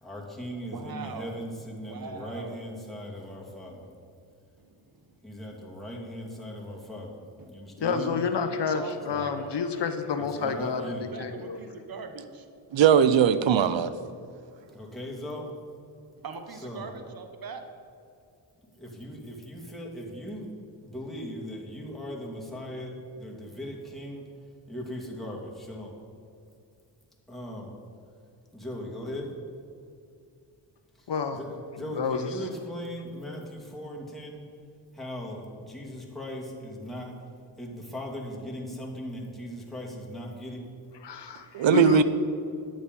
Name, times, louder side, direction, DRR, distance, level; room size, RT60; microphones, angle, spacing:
voice 1, 0.0-3.8 5.2-7.2 7.5-8.2 9.1-9.2 10.4-11.1 14.7-15.5 16.6-16.8 18.8-20.5 20.8-24.2 24.7-25.9 27.3-27.8 28.5-29.3 31.3-31.5 31.8-34.4 34.9-37.1 37.6-40.7, equal, ahead, -3 dB, 2.5 m, -38 dB
voice 2, 0.7-1.4 1.9-2.7 4.6-5.1 7.4-7.5 8.4-9.5 10.4-12.5 16.2-17.6 23.6-23.8, right 5 dB, 45° right, 6 dB, 1.1 m, -41 dB
voice 3, 7.8-11.6 31.1-31.4 31.8-32.5 41.0-42.0, left 6 dB, 60° left, 9 dB, 0.9 m, -29 dB
voice 4, 12.7-13.9 41.5-42.0, right 9 dB, 70° right, 14 dB, 0.7 m, -19 dB
10.0 x 7.2 x 5.3 m, 2.4 s
cardioid pair, 50°, 47 cm